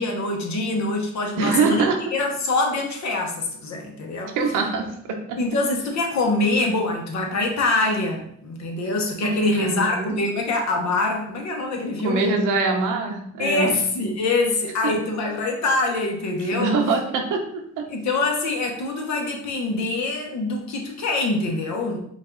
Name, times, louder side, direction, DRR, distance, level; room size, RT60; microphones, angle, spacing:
voice 1, 0.0-4.4 5.4-12.3 13.4-16.7 17.9-22.0, left 2 dB, 65° left, 2 dB, 1.1 m, -24 dB
voice 2, 1.4-2.0 4.4-5.4 9.2-10.2 12.0-13.7 16.5-17.9, right 4 dB, 85° right, 3 dB, 0.9 m, -23 dB
5.2 x 2.6 x 3.9 m, 0.69 s
cardioid pair, 90°, 30 cm